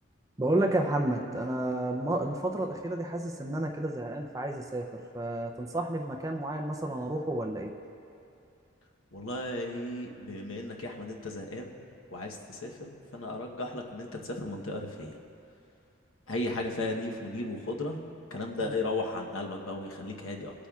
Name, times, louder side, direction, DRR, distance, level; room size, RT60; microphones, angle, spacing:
voice 1, 0.4-7.7 18.6-18.8, right 1 dB, 15° right, 2 dB, 0.5 m, -31 dB
voice 2, 9.1-11.8 12.1-15.1 16.3-18.0 18.3-20.5, left 2 dB, 75° left, 1 dB, 1.0 m, -35 dB
18.5 x 8.5 x 2.4 m, 2.6 s
head